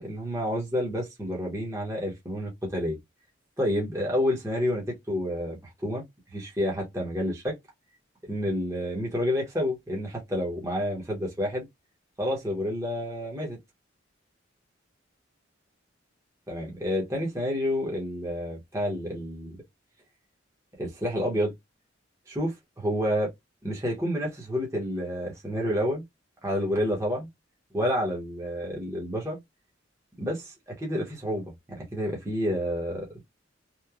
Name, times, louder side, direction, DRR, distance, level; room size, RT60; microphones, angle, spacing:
voice 1, 0.0-3.0 3.6-6.0 6.3-7.5 8.2-11.7 12.2-13.6 16.5-19.6 20.8-21.5 22.3-23.3 23.6-26.0 26.4-27.3 27.7-29.4 30.2-33.1, equal, 15° right, 0.8 m, -29 dB
3.0 x 2.1 x 2.3 m
head